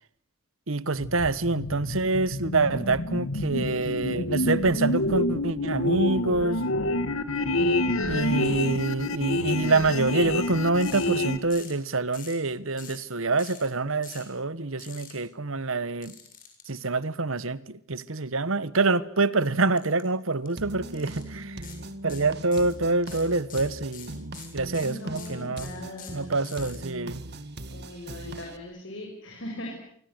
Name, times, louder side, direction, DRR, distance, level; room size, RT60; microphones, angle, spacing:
voice 1, 0.7-6.6 8.1-16.2 16.7-21.6 22.0-25.7 26.1-27.2, right 3 dB, 70° right, 1.2 m, -26 dB
sound 1, 1.0-11.4, left 1 dB, 80° left, 2.0 m, -28 dB
sound 2, 10.8-11.1 11.5-11.8 12.1-12.4 12.8-13.1 13.4-13.6 14.0-14.3 14.8-15.1 16.0-16.6 19.8-20.0 20.3-20.5 20.9-21.2 21.6-21.8 22.1-22.7 23.0-26.8, left 8 dB, 40° left, 7.4 m, -45 dB
sound 3, 20.6-28.6, right 1 dB, 50° right, 1.9 m, -40 dB
voice 2, 24.8-26.3 27.7-29.7, left 1 dB, 60° left, 7.1 m, -39 dB
28.0 x 25.0 x 8.1 m
head